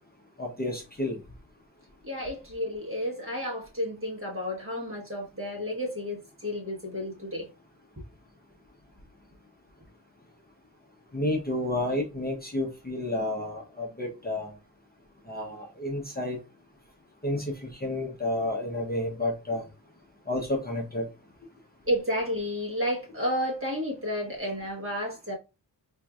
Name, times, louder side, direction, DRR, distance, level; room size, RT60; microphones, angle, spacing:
voice 1, 0.4-1.2 11.1-14.5 15.3-16.4 17.2-19.7 20.3-21.1, left 1 dB, 20° left, 0.7 m, -30 dB
voice 2, 2.0-7.5 21.9-25.3, equal, 30° right, 1.4 m, -31 dB
4.4 x 2.7 x 2.3 m
wide cardioid pair, 105°, 43 cm